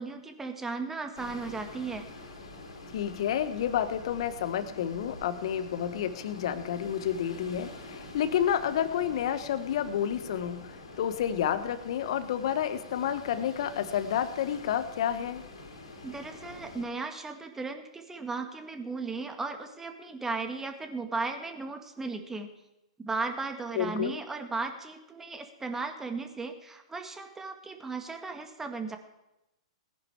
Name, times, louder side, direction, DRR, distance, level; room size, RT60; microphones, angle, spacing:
voice 1, 0.0-2.0 16.0-22.5 23.0-29.0, right 3 dB, 10° right, 5 dB, 1.9 m, -36 dB
sound 1, 1.1-16.9, left 2 dB, 75° left, 3.6 m, -46 dB
voice 2, 2.9-15.4 23.7-24.2, left 9 dB, 60° left, 12 dB, 1.3 m, -30 dB
19.0 x 10.5 x 4.9 m, 0.93 s
figure-of-eight pair, 110°, 3 cm